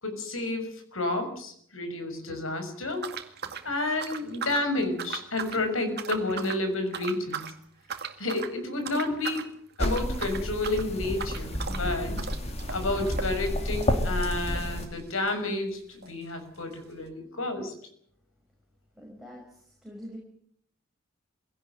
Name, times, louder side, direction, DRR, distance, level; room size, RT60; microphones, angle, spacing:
voice 1, 0.0-3.1 3.6-7.5 8.2-9.4 9.8-12.2 12.7-17.7, left 2 dB, 80° left, 7 dB, 6.2 m, -30 dB
sound 1, 3.0-4.7 5.0-5.6 5.9-6.6 6.9-7.5 7.9-8.5 8.8-9.5 9.8-15.4 15.7-15.8 16.0-16.1 16.8-16.9, right 6 dB, 50° right, 2.2 m, -38 dB
sound 2, 9.8-14.9, left 1 dB, 30° left, 2.7 m, -30 dB
voice 2, 19.0-20.2, equal, ahead, -2 dB, 5.7 m, -45 dB
24.0 x 17.5 x 9.2 m, 0.67 s
head